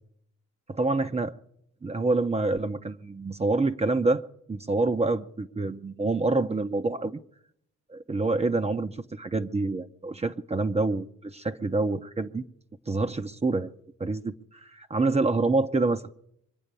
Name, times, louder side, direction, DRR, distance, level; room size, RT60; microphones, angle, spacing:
voice 1, 0.7-1.3 1.8-4.2 4.5-7.2 8.1-12.4 12.9-16.3, right 3 dB, 20° right, 0.8 m, -27 dB
24.0 x 8.7 x 6.8 m
cardioid pair, 90°, 30 cm